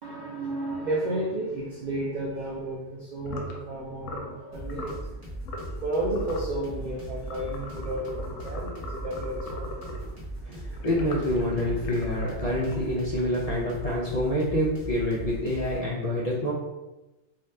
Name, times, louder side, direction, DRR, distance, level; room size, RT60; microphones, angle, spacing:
voice 1, 0.0-10.8, right 1 dB, 70° right, -3 dB, 0.4 m, -33 dB
sound 1, 3.2-3.6 4.0-4.3 4.7-5.0 5.4-5.8 6.1-6.5 7.2-10.1 10.8-13.6, left 2 dB, 85° left, 1.0 m, -39 dB
sound 2, 4.5-15.8, right 2 dB, 15° right, 1.0 m, -38 dB
voice 2, 10.5-16.5, left 1 dB, 55° left, -7 dB, 0.4 m, -27 dB
2.7 x 2.3 x 3.2 m, 1.1 s
omnidirectional pair, 1.3 m